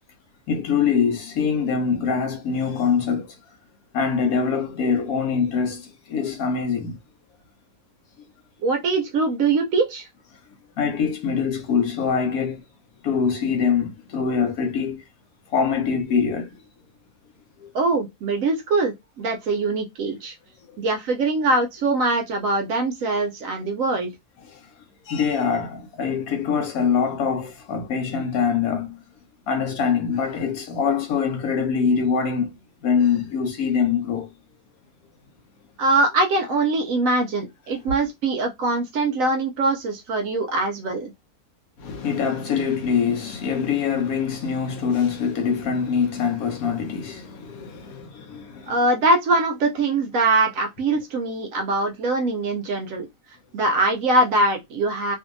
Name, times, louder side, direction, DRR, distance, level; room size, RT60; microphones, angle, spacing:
voice 1, 0.5-3.2 3.9-5.8 6.1-7.0 10.8-12.6 13.0-15.0 15.5-16.5 25.1-29.0 29.5-32.5 32.8-34.3 41.8-48.7, left 6 dB, 70° left, 1.0 m, -23 dB
voice 2, 8.6-10.1 17.7-20.3 20.8-24.1 35.8-41.1 48.7-53.1 53.5-55.2, right 2 dB, 70° right, 0.8 m, -22 dB
2.7 x 2.6 x 2.5 m
omnidirectional pair, 1.7 m